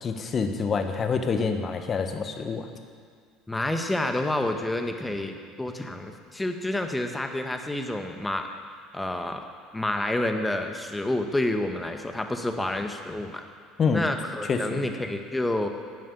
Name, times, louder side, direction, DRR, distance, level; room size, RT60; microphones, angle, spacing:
voice 1, 0.0-2.7 13.8-14.0 14.5-14.8, left 5 dB, 35° left, 6 dB, 1.3 m, -26 dB
voice 2, 3.5-8.5 8.9-9.4 9.7-13.4 13.9-15.7, left 1 dB, 10° left, 5 dB, 1.4 m, -29 dB
11.0 x 9.2 x 7.0 m, 2.1 s
hypercardioid pair, 70°, 0 cm